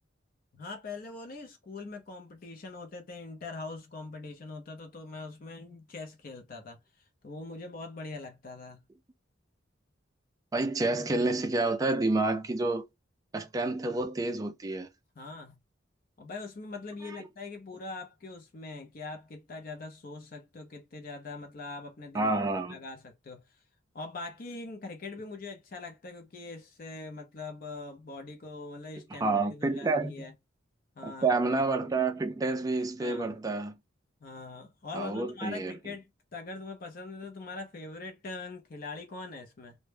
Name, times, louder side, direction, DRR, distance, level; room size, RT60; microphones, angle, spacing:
voice 1, 0.5-6.8 7.2-8.8 15.2-15.6 16.2-22.4 22.7-23.4 23.9-30.3 31.0-31.3 33.0-33.3 34.2-39.8, left 3 dB, 45° left, 0.5 m, -42 dB
voice 2, 10.5-12.8 13.3-14.9 17.0-17.2 22.1-22.8 29.1-30.2 31.0-33.7 34.9-35.8, right 3 dB, 20° right, 0.3 m, -29 dB
2.1 x 2.1 x 3.2 m
head